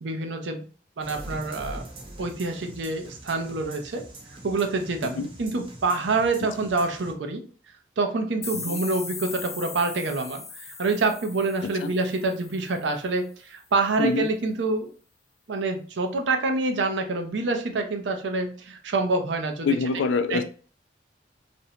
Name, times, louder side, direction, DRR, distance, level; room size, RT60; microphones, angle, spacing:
voice 1, 0.0-0.7 1.0-1.8 2.2-4.0 4.4-7.4 8.0-14.9 15.5-19.8 20.3-20.4, right 3 dB, 75° right, 0.5 m, -27 dB
sound 1, 1.0-7.1, right 1 dB, 30° right, 0.6 m, -43 dB
sound 2, 8.4-13.1, left 4 dB, 15° left, 0.5 m, -39 dB
voice 2, 19.6-20.4, left 4 dB, 90° left, 0.3 m, -25 dB
2.6 x 2.1 x 2.7 m
head